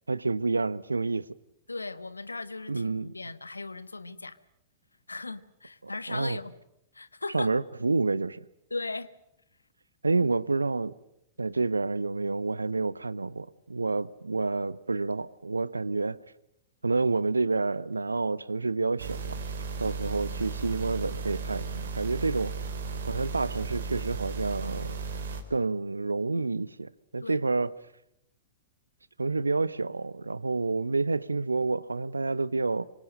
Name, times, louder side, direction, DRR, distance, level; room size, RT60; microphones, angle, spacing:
voice 1, 0.1-1.3 2.7-3.1 5.8-6.4 7.3-8.4 10.0-10.9 11.4-16.2 16.8-19.4 19.8-22.5 23.1-25.0 25.5-27.7 29.2-32.8, right 3 dB, 80° right, 0.9 m, -29 dB
voice 2, 1.7-4.4 5.1-6.5 6.9-7.5 8.7-9.1 27.2-27.4, left 3 dB, 85° left, 1.3 m, -37 dB
sound 1, 19.0-25.4, right 5 dB, 60° right, 3.9 m, -35 dB
26.0 x 24.5 x 7.7 m
figure-of-eight pair, 105°, 0 cm